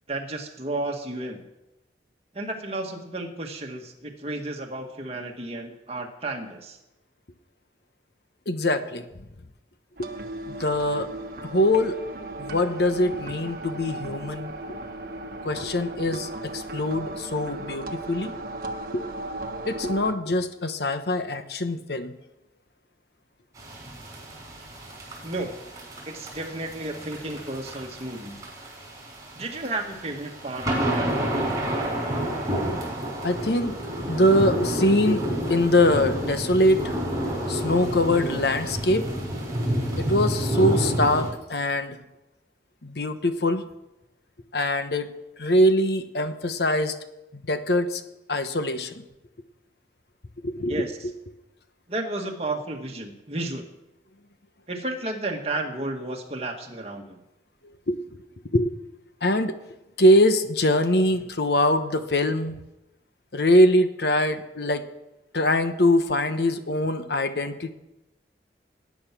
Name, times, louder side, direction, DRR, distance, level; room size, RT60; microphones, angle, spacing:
voice 1, 0.1-1.4 2.3-6.8 25.2-25.5 26.0-28.4 29.4-31.3 50.7-50.9 51.9-53.6 54.7-57.2, right 2 dB, 35° right, 2 dB, 1.9 m, -32 dB
voice 2, 8.5-9.0 10.0-10.1 10.5-11.1 11.4-12.0 12.4-14.5 15.4-18.3 18.9-19.0 19.6-22.1 33.2-33.8 34.1-36.9 37.5-39.1 40.0-42.0 42.8-43.6 44.5-45.1 45.4-47.0 47.3-48.0 48.3-49.0 50.4-51.1 57.9-58.0 58.5-58.7 59.2-59.6 60.0-62.6 63.3-64.9 65.3-67.7, left 1 dB, 65° left, 9 dB, 1.1 m, -23 dB
sound 1, 10.0-20.1, right 2 dB, 55° right, 1.3 m, -36 dB
sound 2, 23.6-41.3, equal, 20° right, 5.7 m, -30 dB
19.0 x 9.6 x 6.1 m, 0.94 s
head